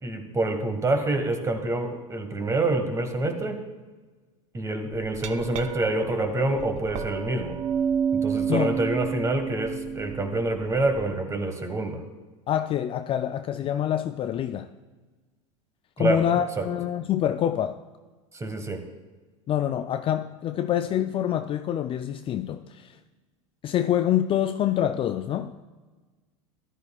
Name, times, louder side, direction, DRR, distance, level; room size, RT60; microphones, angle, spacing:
voice 1, 0.0-3.6 4.5-7.6 8.1-12.0 16.0-16.2 16.6-16.7 18.3-18.8, right 2 dB, 20° right, 6 dB, 1.6 m, -27 dB
Glass, 4.9-11.1, right 7 dB, 45° right, 0.7 m, -30 dB
voice 2, 8.5-8.8 12.5-14.7 16.0-17.8 19.5-23.0 23.6-25.5, left 10 dB, 30° left, 8 dB, 0.4 m, -26 dB
13.5 x 12.0 x 2.4 m, 1.3 s
hypercardioid pair, 95°, 17 cm